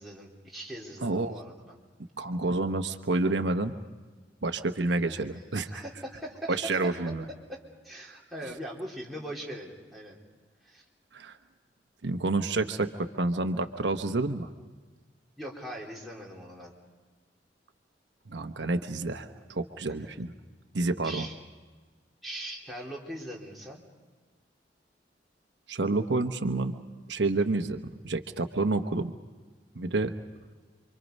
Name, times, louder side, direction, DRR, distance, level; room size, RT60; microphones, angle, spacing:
voice 1, 0.0-1.8 4.9-5.2 5.5-7.1 7.5-10.2 10.6-10.8 15.4-16.7 21.0-21.3 22.2-23.8, right 1 dB, ahead, -2 dB, 3.7 m, -41 dB
voice 2, 1.0-1.4 2.2-3.7 4.4-5.8 6.5-7.3 11.1-11.4 12.0-14.5 18.3-20.3 20.7-21.3 25.7-26.8 27.1-27.8 28.0-29.1 29.7-30.1, right 2 dB, 90° right, 6 dB, 1.1 m, -29 dB
28.5 x 24.5 x 5.4 m, 1.4 s
head